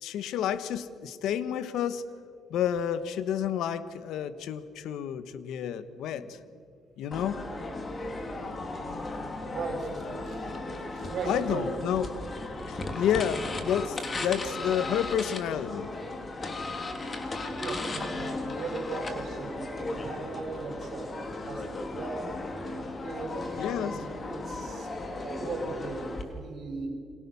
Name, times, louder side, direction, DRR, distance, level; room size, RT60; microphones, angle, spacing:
voice 1, 0.0-2.0 2.5-6.3 7.0-7.5 11.2-12.1 12.7-15.9 23.5-24.0, left 9 dB, 85° left, 13 dB, 1.3 m, -30 dB
sound 1, 7.1-26.2, left 2 dB, 35° left, 3.4 m, -36 dB
voice 2, 9.5-10.5 10.8-12.0 14.1-14.3 17.5-22.2 23.0-24.9 25.2-26.9, right 3 dB, 65° right, 4 dB, 5.0 m, -38 dB
29.0 x 26.0 x 7.1 m, 2.3 s
cardioid pair, 90°, 0 cm